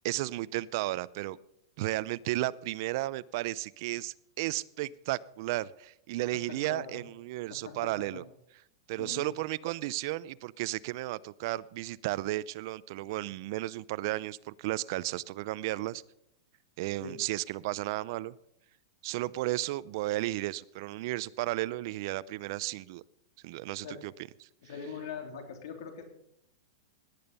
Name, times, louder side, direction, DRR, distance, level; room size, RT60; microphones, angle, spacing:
voice 1, 0.0-1.4 1.8-8.2 8.9-16.0 16.8-18.3 19.0-23.0 23.4-24.1 24.4-24.5, right 17 dB, 50° right, 21 dB, 0.5 m, -34 dB
voice 2, 6.5-7.0 7.6-8.2 9.0-9.3 17.0-17.2 23.8-24.0 24.6-26.0, left 6 dB, 65° left, 5 dB, 3.1 m, -42 dB
18.0 x 10.5 x 5.4 m, 0.77 s
supercardioid pair, 155°, 2 cm